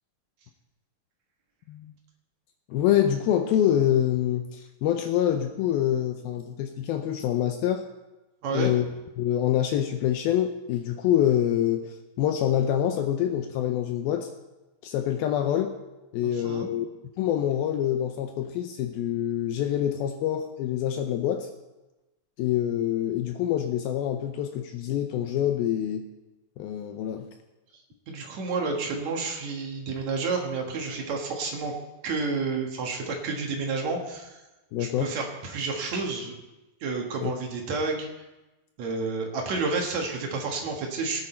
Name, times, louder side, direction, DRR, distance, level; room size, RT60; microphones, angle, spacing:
voice 1, 2.7-7.9 8.5-8.9 9.2-14.3 14.8-15.7 16.1-16.9 17.2-21.5 22.4-26.1 26.6-27.3 34.7-35.1 37.2-37.3, left 11 dB, 80° left, 6 dB, 2.2 m, -26 dB
voice 2, 8.4-8.7 16.2-16.7 28.1-31.7 32.0-34.4 34.8-36.4 36.8-38.1 38.8-41.2, right 4 dB, 55° right, 1 dB, 2.2 m, -30 dB
18.0 x 10.0 x 4.4 m, 1.1 s
omnidirectional pair, 4.9 m